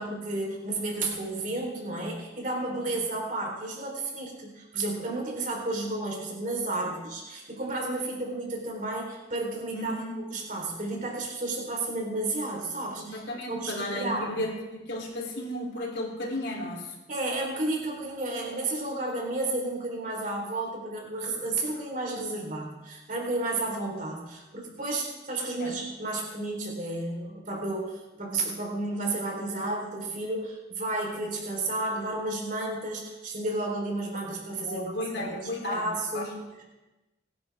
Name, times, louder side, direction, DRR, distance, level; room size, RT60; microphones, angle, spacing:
voice 1, 0.0-14.4 17.1-34.9 35.2-36.6, right 2 dB, 45° right, -1 dB, 3.9 m, -32 dB
voice 2, 9.7-10.2 13.0-16.9 25.6-25.7 34.3-34.4 34.7-36.3, left 1 dB, 70° left, 0 dB, 3.4 m, -34 dB
22.5 x 10.5 x 3.6 m, 1.1 s
head